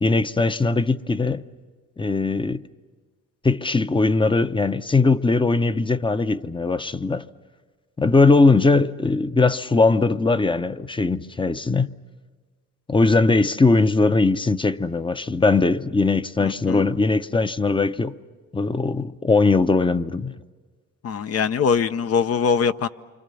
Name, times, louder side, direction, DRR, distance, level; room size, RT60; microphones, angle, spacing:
voice 1, 0.0-1.5 2.0-2.6 3.4-7.2 8.0-11.9 12.9-18.1 18.5-20.3, left 3 dB, 15° left, 0.7 m, -20 dB
voice 2, 16.4-16.8 21.0-22.9, left 6 dB, 55° left, 0.7 m, -22 dB
28.5 x 25.5 x 6.9 m
cardioid pair, 90°, 30 cm